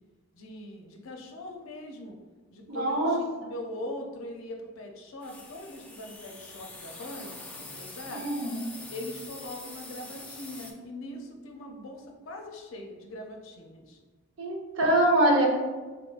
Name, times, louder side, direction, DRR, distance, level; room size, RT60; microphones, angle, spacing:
voice 1, 0.3-2.2 2.5-8.2 8.9-14.0, left 1 dB, 75° left, 2 dB, 0.6 m, -41 dB
voice 2, 2.7-3.5 8.1-8.7 14.4-15.5, right 1 dB, 70° right, -1 dB, 0.8 m, -25 dB
sound 1, 5.2-10.7, left 2 dB, 5° left, 0.4 m, -45 dB
3.7 x 3.5 x 2.4 m, 1.3 s
head